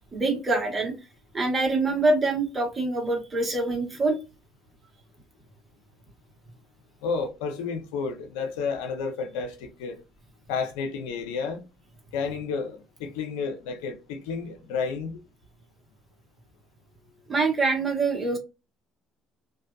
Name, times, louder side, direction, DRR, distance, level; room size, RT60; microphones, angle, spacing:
voice 1, 0.1-0.9 1.3-4.2 17.3-18.4, right 3 dB, 25° right, 1.3 m, -25 dB
voice 2, 7.0-10.0 10.5-11.6 12.1-15.2, left 5 dB, 80° left, 0.6 m, -31 dB
2.6 x 2.3 x 2.3 m
hypercardioid pair, 70°, 0 cm